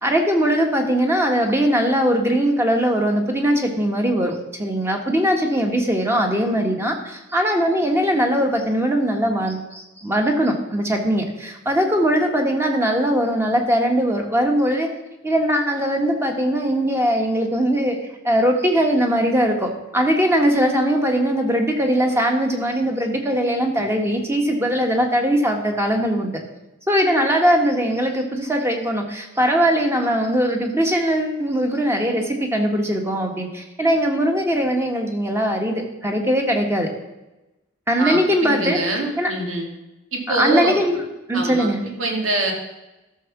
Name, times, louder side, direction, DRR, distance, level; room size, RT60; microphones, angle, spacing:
voice 1, 0.0-14.9 15.2-18.0 18.2-26.4 26.9-36.9 37.9-38.8 39.2-39.3 40.3-41.0 41.3-41.8, equal, 15° right, 2 dB, 1.5 m, -20 dB
voice 2, 38.0-39.7 40.1-40.8 41.3-42.5, right 2 dB, 80° right, 1 dB, 2.4 m, -25 dB
13.0 x 6.4 x 6.0 m, 1.0 s
head